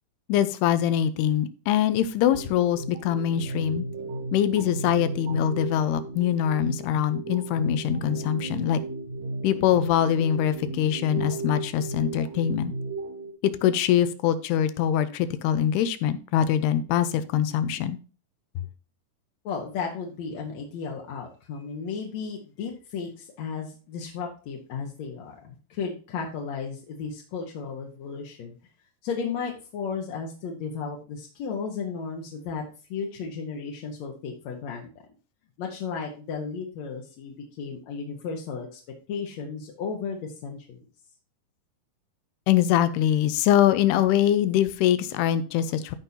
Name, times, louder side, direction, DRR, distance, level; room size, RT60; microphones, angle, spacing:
voice 1, 0.3-3.9 4.3-8.8 9.4-12.7 13.4-18.0 42.5-46.0, left 10 dB, 80° left, 13 dB, 2.7 m, -23 dB
sound 1, 2.3-13.3, right 3 dB, 55° right, 2.2 m, -35 dB
voice 2, 19.4-28.5 29.0-32.6 32.9-34.9 35.6-38.8 39.1-40.8, left 5 dB, 65° left, 0 dB, 1.8 m, -34 dB
15.0 x 5.5 x 2.8 m, 0.36 s
omnidirectional pair, 4.7 m